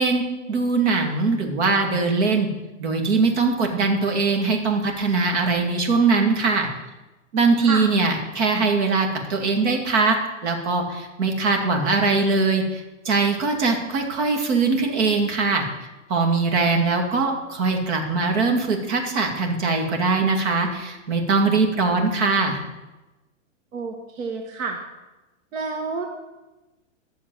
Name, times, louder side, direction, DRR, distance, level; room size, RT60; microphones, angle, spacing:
voice 1, 0.0-2.5 2.8-6.7 7.3-15.6 16.1-22.6, right 4 dB, 60° right, 2 dB, 2.5 m, -21 dB
voice 2, 23.7-24.8 25.5-26.1, right 4 dB, 80° right, 2 dB, 1.9 m, -29 dB
12.0 x 7.0 x 7.7 m, 1.1 s
supercardioid pair, 170°, 39 cm